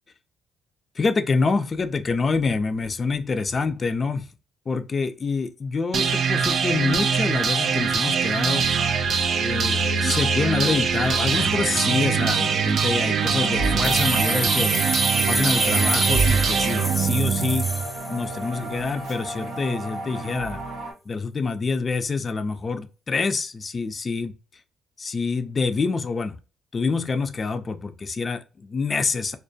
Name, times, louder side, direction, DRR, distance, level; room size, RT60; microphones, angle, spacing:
voice 1, 1.0-4.3 4.7-8.7 9.4-14.7 15.3-17.7 18.1-20.6 21.1-24.3 25.0-26.4 26.7-29.4, left 4 dB, 35° left, 0.3 m, -26 dB
sound 1, 5.9-17.9, right 6 dB, 65° right, 0.3 m, -23 dB
sound 2, 13.2-20.9, right 1 dB, 80° right, 0.7 m, -32 dB
sound 3, 13.8-18.6, equal, 5° right, 0.7 m, -28 dB
2.3 x 2.1 x 2.6 m
cardioid pair, 90°, 0 cm